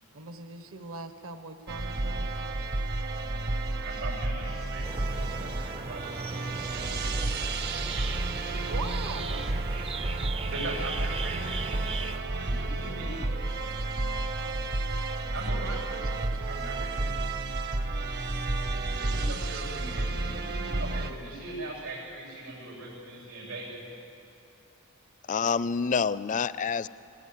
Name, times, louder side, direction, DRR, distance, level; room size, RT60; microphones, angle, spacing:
voice 1, 0.1-2.3 8.7-9.5 12.6-12.8 15.5-16.9 19.5-19.7, right 3 dB, 70° right, 8 dB, 1.4 m, -42 dB
sound 1, 1.7-21.1, right 2 dB, 50° right, 1.0 m, -31 dB
voice 2, 3.8-7.5 10.5-11.8 12.4-13.2 15.3-17.2 19.0-23.8, right 2 dB, 90° right, -4 dB, 7.9 m, -40 dB
sound 2, 4.8-12.2, right 4 dB, 25° right, 0.5 m, -38 dB
voice 3, 25.3-26.9, left 5 dB, 35° left, 17 dB, 0.4 m, -27 dB
19.5 x 18.5 x 9.8 m, 2.7 s
head